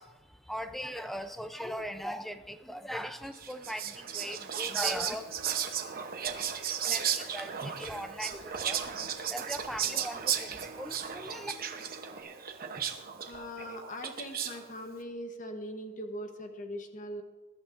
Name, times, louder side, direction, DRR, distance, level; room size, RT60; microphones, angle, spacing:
voice 1, 0.0-5.6 6.8-11.5, equal, ahead, 9 dB, 0.5 m, -40 dB
Whispering, 3.3-14.7, right 8 dB, 40° right, 0.9 m, -35 dB
sound 1, 3.9-12.2, right 2 dB, 60° right, 4.0 m, -53 dB
voice 2, 13.2-17.2, equal, 35° left, 5 dB, 1.1 m, -41 dB
21.0 x 11.5 x 2.6 m, 1.2 s
head